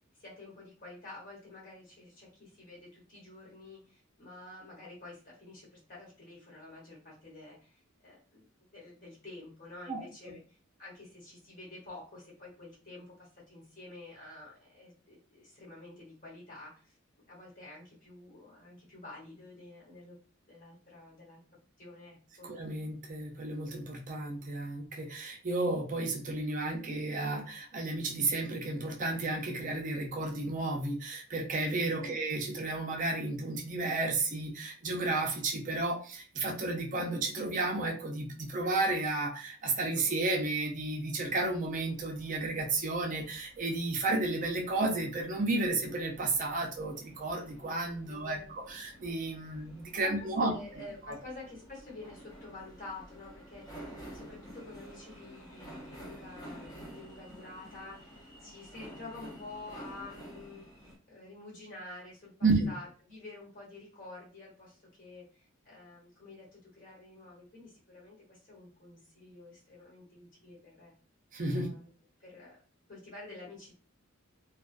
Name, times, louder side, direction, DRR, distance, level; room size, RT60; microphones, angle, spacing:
voice 1, 0.2-8.4 8.7-17.0 17.3-20.2 20.5-21.4 21.8-22.5 32.0-32.2 48.1-48.5 50.0-53.8 54.1-70.9 71.5-71.9 72.2-72.6 72.9-73.8, left 2 dB, 40° left, -6 dB, 1.2 m, -49 dB
voice 2, 22.4-50.5 51.1-51.2 62.4-62.7 71.3-71.7, right 2 dB, 40° right, 2 dB, 0.5 m, -32 dB
sound 1, 41.3-61.0, equal, 15° left, 0.7 m, -51 dB
2.3 x 2.2 x 2.4 m, 0.37 s
head